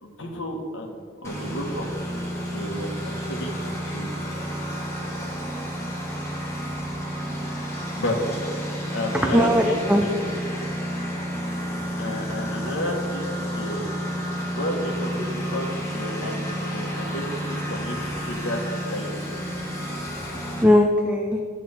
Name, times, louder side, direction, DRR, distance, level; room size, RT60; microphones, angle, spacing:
voice 1, 0.0-1.9 2.4-4.2 7.9-8.6 8.9-10.3 12.0-14.0 14.5-19.3, left 1 dB, 70° left, 1 dB, 1.7 m, -31 dB
Engine, 1.2-20.6, equal, 15° left, 1.5 m, -31 dB
voice 2, 9.1-10.1 11.6-12.0 20.6-21.4, left 1 dB, 5° right, 2 dB, 0.5 m, -20 dB
12.0 x 8.2 x 4.4 m, 2.1 s
head